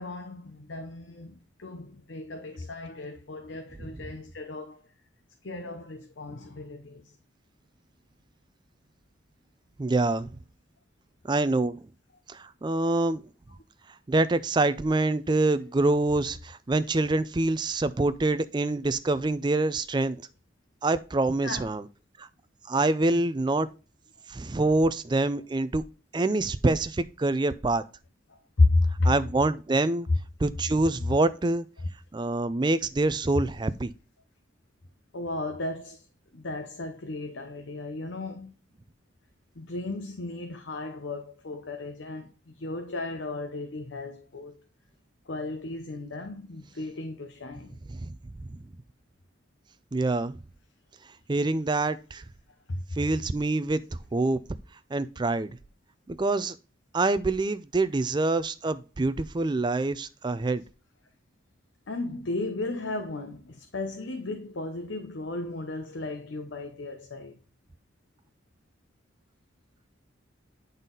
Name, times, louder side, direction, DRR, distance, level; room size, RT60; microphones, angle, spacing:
voice 1, 0.0-4.8 5.4-7.1 21.4-21.6 23.1-23.2 28.3-29.2 31.8-31.9 35.1-36.0 36.3-38.5 39.5-44.6 45.3-47.8 52.7-52.8 61.9-67.4, left 2 dB, 70° left, 0.8 m, -33 dB
voice 2, 9.8-10.3 11.3-11.8 12.3-13.2 14.1-20.2 20.8-21.8 22.2-22.3 22.7-23.7 24.3-25.8 26.1-27.8 29.0-30.1 30.4-31.7 32.1-33.9 47.9-48.1 48.5-48.6 49.9-50.4 51.3-52.2 53.0-53.8 54.1-54.4 54.9-55.5 56.1-56.5 56.9-60.6, right 2 dB, 25° right, 0.4 m, -26 dB
9.0 x 4.0 x 3.9 m
head